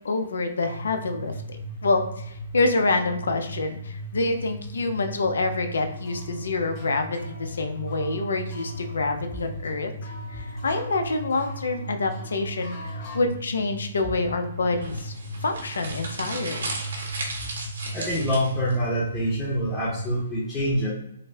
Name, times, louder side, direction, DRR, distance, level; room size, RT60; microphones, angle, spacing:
voice 1, 0.0-9.9 10.3-15.1 15.4-16.7, left 3 dB, 80° left, 6 dB, 0.6 m, -27 dB
sound 1, 0.6-20.2, right 1 dB, 30° right, 0.7 m, -37 dB
sound 2, 5.9-13.2, left 2 dB, 35° left, 1.5 m, -46 dB
sound 3, 14.8-18.7, right 2 dB, 90° right, 1.3 m, -35 dB
voice 2, 17.9-20.9, equal, 15° left, -8 dB, 0.9 m, -25 dB
3.9 x 2.1 x 2.7 m, 0.80 s
hypercardioid pair, 155°, 0 cm